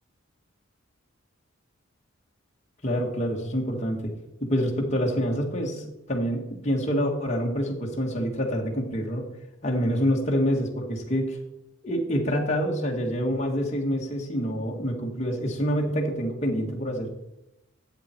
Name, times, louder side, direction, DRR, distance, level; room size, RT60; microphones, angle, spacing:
voice 1, 2.8-4.1 4.4-9.3 9.6-11.4 11.8-17.1, equal, 35° left, -1 dB, 1.8 m, -26 dB
12.5 x 8.3 x 4.5 m, 0.89 s
head